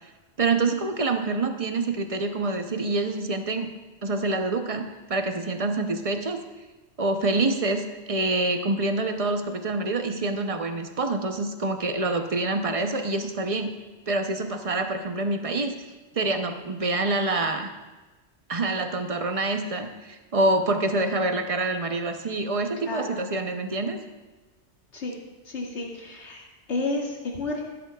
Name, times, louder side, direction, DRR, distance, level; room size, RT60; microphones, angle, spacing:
voice 1, 0.4-3.7 4.0-6.4 7.0-13.7 14.1-15.7 16.2-17.7 18.5-24.0, right 2 dB, 40° right, 6 dB, 0.6 m, -26 dB
voice 2, 22.8-23.2 24.9-25.2 25.5-27.6, left 2 dB, 90° left, -2 dB, 2.1 m, -31 dB
13.0 x 10.5 x 2.3 m, 1.2 s
omnidirectional pair, 1.1 m